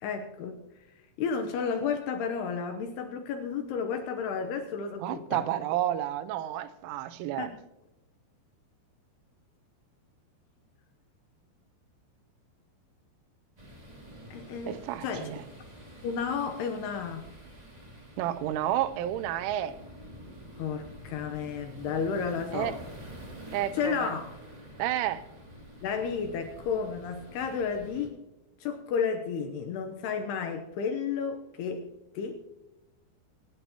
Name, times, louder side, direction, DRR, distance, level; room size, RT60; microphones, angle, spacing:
voice 1, 0.0-0.6 1.2-5.4 7.4-7.5 14.3-15.3 16.0-17.3 20.6-22.8 23.7-24.3 25.8-28.2 28.6-31.8 32.2-32.3, left 6 dB, 75° left, 2.5 m, -32 dB
voice 2, 5.0-7.5 14.7-15.4 18.2-19.8 22.5-22.7 23.5-24.1 24.8-25.2, right 12 dB, 90° right, 3.1 m, -31 dB
sound 1, 13.6-28.1, right 1 dB, 20° right, 1.1 m, -48 dB
24.5 x 11.0 x 2.9 m
omnidirectional pair, 5.5 m